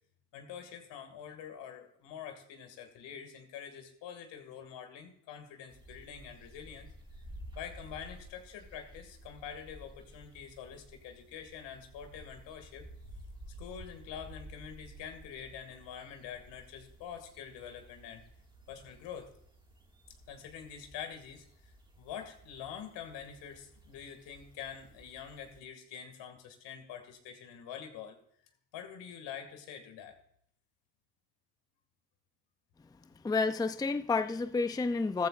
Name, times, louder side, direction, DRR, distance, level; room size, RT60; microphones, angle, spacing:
voice 1, 0.3-6.9 7.6-12.9 13.6-18.3 18.7-19.3 20.3-21.5 22.0-28.2 28.7-30.2, left 8 dB, 75° left, 6 dB, 2.3 m, -46 dB
sound 1, 5.7-25.6, right 1 dB, 10° right, 2.1 m, -53 dB
voice 2, 33.2-35.3, left 4 dB, 10° left, 11 dB, 0.5 m, -30 dB
14.5 x 14.0 x 2.5 m, 0.67 s
supercardioid pair, 70°, 44 cm